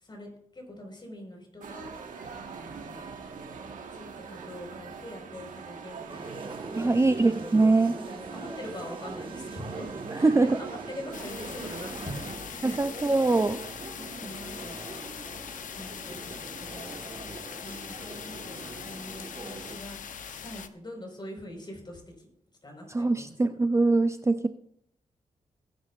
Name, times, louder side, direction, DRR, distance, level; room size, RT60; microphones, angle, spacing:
voice 1, 0.0-1.9 2.5-3.1 3.9-14.9 15.7-17.0 17.6-20.0 20.3-22.3 22.6-23.3, left 1 dB, 35° left, 1 dB, 4.5 m, -43 dB
sound 1, 1.6-12.3, right 5 dB, 85° right, 1.4 m, -43 dB
sound 2, 6.1-19.8, right 3 dB, 40° right, 1.4 m, -43 dB
voice 2, 6.8-8.0 10.2-10.5 12.6-13.6 22.9-24.5, right 3 dB, 20° right, 9 dB, 0.5 m, -23 dB
sound 3, 11.1-20.7, left 7 dB, 80° left, 0.7 m, -41 dB
19.0 x 10.0 x 2.4 m, 0.74 s
cardioid pair, 75°, 13 cm